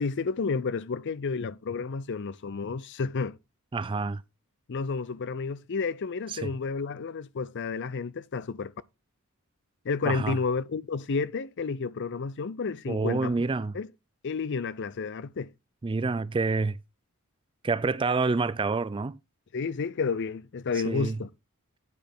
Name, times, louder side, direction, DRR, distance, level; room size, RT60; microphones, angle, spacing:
voice 1, 0.0-3.4 4.7-8.7 9.8-13.3 13.7-13.9 14.2-15.5 19.5-21.3, left 4 dB, 55° left, 0.5 m, -31 dB
voice 2, 3.7-4.2 6.3-6.5 10.0-10.4 12.9-13.7 15.8-16.8 17.6-19.2 20.8-21.2, right 3 dB, 20° right, 0.3 m, -28 dB
9.5 x 5.1 x 4.4 m
head